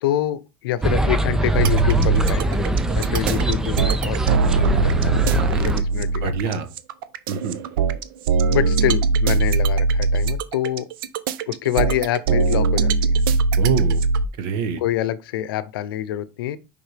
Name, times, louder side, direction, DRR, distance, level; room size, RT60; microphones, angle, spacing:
voice 1, 0.0-2.7 2.9-6.6 8.5-10.9 11.4-13.2 14.8-16.6, left 12 dB, 90° left, 0.7 m, -26 dB
sound 1, 0.8-5.8, right 2 dB, 5° right, 0.4 m, -22 dB
sound 2, 1.6-14.3, right 4 dB, 75° right, 0.7 m, -20 dB
voice 2, 5.9-6.7 7.3-7.6 13.6-14.0 14.4-14.8, right 7 dB, 45° right, 1.0 m, -26 dB
6.5 x 5.4 x 3.4 m
supercardioid pair, 170°, 12 cm